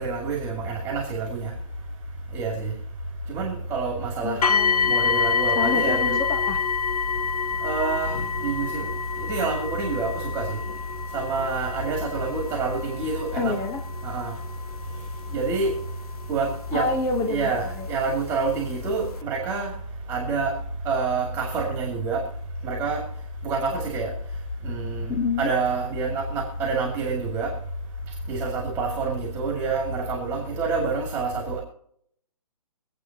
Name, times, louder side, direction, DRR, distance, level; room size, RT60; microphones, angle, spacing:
voice 1, 0.0-1.5 2.3-2.7 3.3-4.4 4.9-6.2 7.6-8.9 9.2-10.6 11.1-13.6 14.0-14.3 15.3-15.7 16.3-16.9 17.3-19.7 20.1-20.5 20.8-22.2 22.6-23.0 23.4-24.1 24.6-27.5 28.3-31.6, right 4 dB, 10° right, -1 dB, 2.3 m, -27 dB
voice 2, 4.2-5.0 5.5-6.6 13.4-13.8 16.7-17.5 17.7-17.9 25.1-25.5, left 3 dB, 15° left, 5 dB, 1.1 m, -28 dB
sound 1, 4.4-17.3 18.1-18.2 18.8-18.9, left 6 dB, 85° left, 0.9 m, -27 dB
24.0 x 8.3 x 2.9 m, 0.68 s
hypercardioid pair, 165°, 19 cm